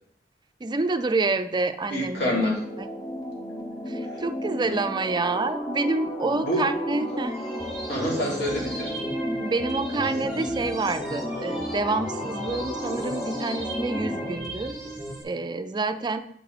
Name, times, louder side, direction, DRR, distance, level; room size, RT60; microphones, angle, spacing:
voice 1, 0.6-2.5 2.8-2.9 3.9-7.3 9.4-14.8 15.2-16.2, right 3 dB, 25° right, 10 dB, 0.4 m, -28 dB
voice 2, 1.9-2.6 4.1-4.2 6.3-6.6 7.9-8.9, left 1 dB, 70° left, -5 dB, 3.3 m, -27 dB
sound 1, 2.2-14.4, equal, 20° left, 0.8 m, -33 dB
sound 2, 7.2-15.2, right 1 dB, ahead, 2.3 m, -36 dB
8.5 x 5.9 x 4.0 m, 0.71 s
head